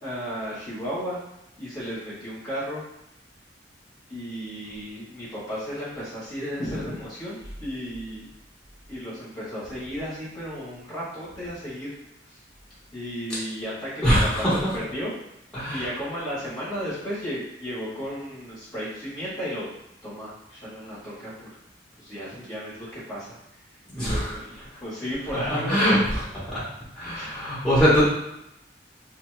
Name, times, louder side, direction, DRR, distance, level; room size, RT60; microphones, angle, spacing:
voice 1, 0.0-1.2 1.6-2.8 4.1-8.3 8.9-11.9 12.2-12.4 12.9-15.1 15.7-19.7 20.0-21.6 22.0-23.3 23.9-26.0 27.1-27.3, equal, 25° left, -11 dB, 1.3 m, -34 dB
voice 2, 14.0-14.7 15.5-15.8 23.9-24.3 25.5-26.0 27.0-28.0, equal, 5° left, -10 dB, 1.4 m, -22 dB
2.9 x 2.8 x 3.2 m, 0.84 s
head